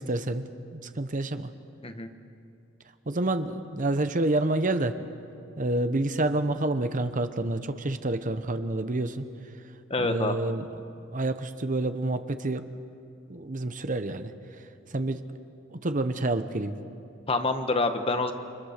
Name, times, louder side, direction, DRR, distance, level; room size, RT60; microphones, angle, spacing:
voice 1, 0.0-1.5 3.1-5.0 5.6-9.2 10.0-10.6 11.1-12.7 13.3-14.3 14.9-15.2 15.7-16.8, right 2 dB, 40° right, 9 dB, 1.0 m, -28 dB
voice 2, 9.9-10.4 17.3-18.3, left 3 dB, 30° left, 7 dB, 1.3 m, -26 dB
29.5 x 25.5 x 6.7 m, 2.6 s
head